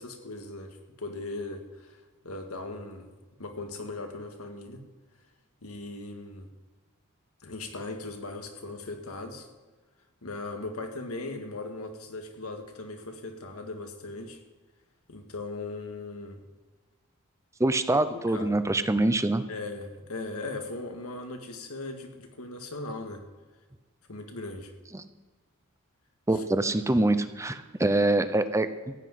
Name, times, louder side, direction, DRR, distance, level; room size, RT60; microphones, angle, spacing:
voice 1, 0.0-2.0 2.2-3.1 3.4-4.8 5.6-6.5 7.4-9.5 10.2-14.4 15.1-16.4 18.1-18.6 19.5-23.2 24.1-24.7 26.3-26.4, left 2 dB, 85° left, 4 dB, 1.9 m, -38 dB
voice 2, 17.6-19.4 24.9-25.0 26.3-28.9, right 2 dB, 15° right, 11 dB, 0.7 m, -25 dB
15.0 x 6.1 x 9.3 m, 1.3 s
head